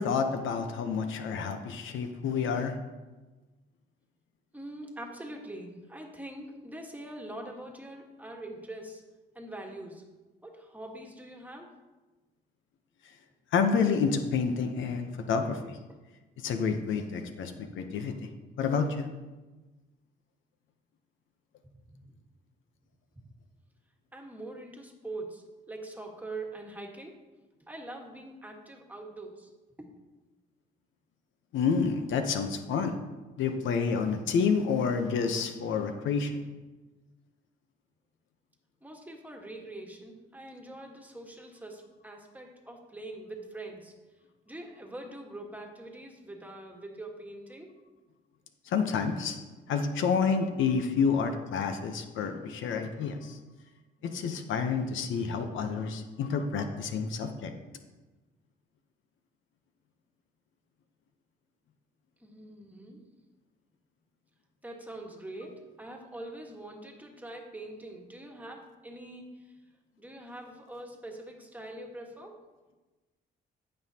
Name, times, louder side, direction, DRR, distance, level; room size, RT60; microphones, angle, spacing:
voice 1, 0.0-2.8 13.5-15.8 16.4-18.3 18.6-19.1 31.5-33.0 33.4-36.3 48.7-49.4 49.7-53.4 54.0-57.5, left 5 dB, 75° left, 7 dB, 0.8 m, -29 dB
voice 2, 4.5-9.0 9.3-10.0 10.4-11.7 15.9-16.0 21.6-22.2 24.1-27.2 27.6-29.5 29.8-29.9 38.8-43.9 44.5-47.7 62.2-63.0 64.6-69.4 70.0-72.4, right 1 dB, 10° right, 1 dB, 1.5 m, -43 dB
15.5 x 5.5 x 2.9 m, 1.2 s
cardioid pair, 90°, 20 cm